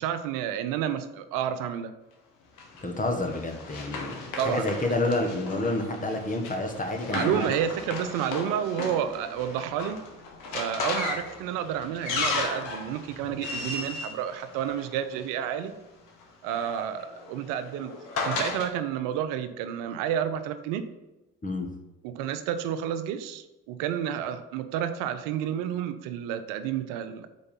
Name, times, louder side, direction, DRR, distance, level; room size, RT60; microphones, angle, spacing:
voice 1, 0.0-1.9 4.4-4.7 7.1-10.0 10.5-15.7 16.4-17.9 18.2-20.9 22.0-27.3, right 9 dB, 80° right, 10 dB, 0.6 m, -30 dB
Run, 2.6-15.2 16.2-18.7, left 3 dB, 75° left, 1.2 m, -35 dB
voice 2, 2.8-4.2 4.4-7.5 21.4-21.7, left 2 dB, 25° left, 4 dB, 1.4 m, -29 dB
5.2 x 4.5 x 5.6 m, 1.0 s
hypercardioid pair, 60°, 32 cm